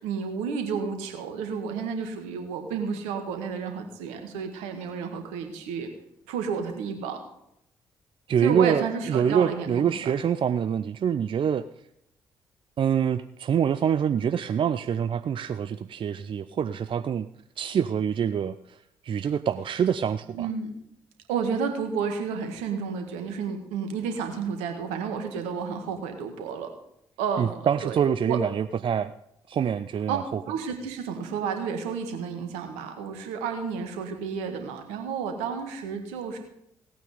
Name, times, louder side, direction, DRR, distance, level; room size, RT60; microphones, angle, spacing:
voice 1, 0.0-5.9 6.3-7.2 8.4-10.1 20.3-20.7 21.3-26.7 27.2-28.0 28.3-28.4 30.1-30.2 30.5-36.4, right 6 dB, 75° right, 5 dB, 1.8 m, -31 dB
voice 2, 8.3-11.6 12.8-17.3 17.6-18.8 19.0-20.5 27.4-29.1 29.5-30.2, right 8 dB, 45° right, 12 dB, 0.5 m, -25 dB
17.0 x 9.1 x 5.1 m, 0.79 s
figure-of-eight pair, 40°, 12 cm